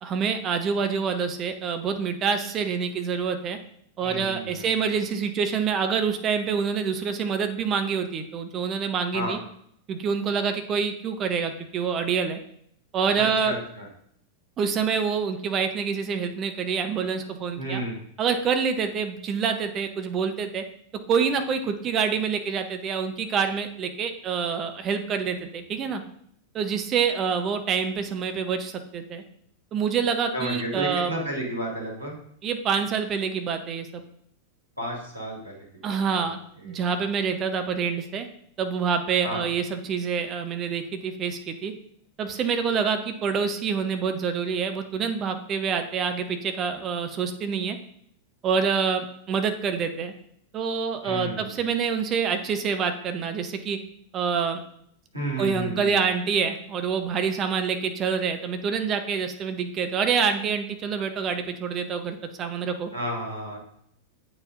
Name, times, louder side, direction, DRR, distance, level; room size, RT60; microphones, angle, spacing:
voice 1, 0.0-3.6 4.0-9.4 9.9-12.4 12.9-13.5 14.6-17.8 18.2-20.6 21.1-26.0 26.5-29.2 29.7-31.1 32.4-34.0 35.8-36.4 36.6-38.3 38.6-41.7 42.2-47.8 48.4-50.1 50.5-53.8 54.1-54.6 55.4-62.9, right 6 dB, 30° right, 7 dB, 0.7 m, -26 dB
voice 2, 4.0-4.7 9.1-9.4 13.2-13.9 17.5-18.0 30.3-32.2 34.8-36.3 36.6-36.8 39.2-39.5 51.0-51.6 55.1-55.9 62.9-63.6, equal, 90° right, -3 dB, 1.8 m, -32 dB
8.7 x 4.5 x 2.5 m, 0.69 s
figure-of-eight pair, 90°, 0 cm